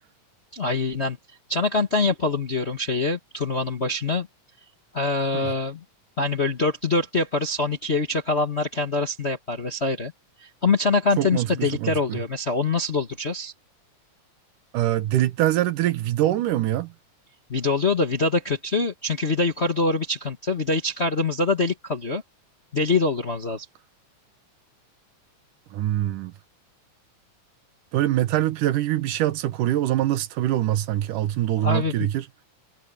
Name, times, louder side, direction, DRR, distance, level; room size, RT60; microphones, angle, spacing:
voice 1, 0.5-1.2 1.5-4.3 4.9-5.8 6.2-10.1 10.4-13.5 17.5-22.2 22.7-23.6 31.6-31.9, left 3 dB, 40° left, 0.9 m, -24 dB
voice 2, 11.2-12.2 14.7-16.9 25.7-26.3 27.9-32.2, right 13 dB, 80° right, 2.6 m, -24 dB
omnidirectional pair, 3.7 m